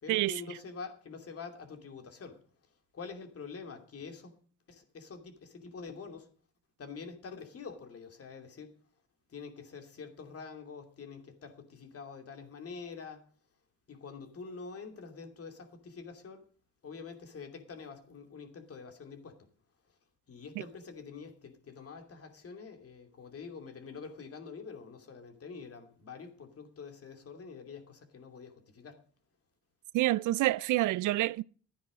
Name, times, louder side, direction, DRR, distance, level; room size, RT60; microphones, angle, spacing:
voice 1, 0.0-2.4 2.9-4.4 4.7-6.3 6.8-8.7 9.3-13.3 13.9-16.5 16.8-19.5 20.3-29.0, left 5 dB, 50° left, 2.8 m, -46 dB
voice 2, 29.9-31.4, right 17 dB, 85° right, 0.5 m, -27 dB
12.5 x 9.7 x 5.2 m
cardioid pair, 90°, 30 cm